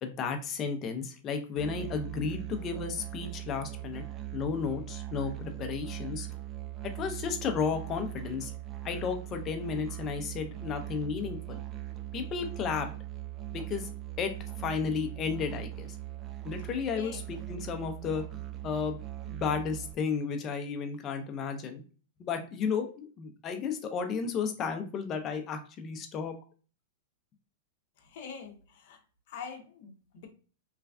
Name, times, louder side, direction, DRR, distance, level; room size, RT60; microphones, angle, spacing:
voice 1, 0.0-4.0 4.3-6.3 6.8-8.5 8.8-11.6 12.1-12.9 13.5-13.9 14.2-16.0 16.4-18.2 18.6-19.0 19.3-21.8 22.2-26.3, left 6 dB, 30° left, 6 dB, 0.5 m, -33 dB
Musical instrument, 1.6-19.9, right 15 dB, 25° right, 0.4 m, -40 dB
voice 2, 28.1-29.0 29.3-30.3, left 6 dB, 60° left, 3 dB, 0.7 m, -44 dB
3.1 x 2.3 x 2.3 m, 0.38 s
supercardioid pair, 140°, 0 cm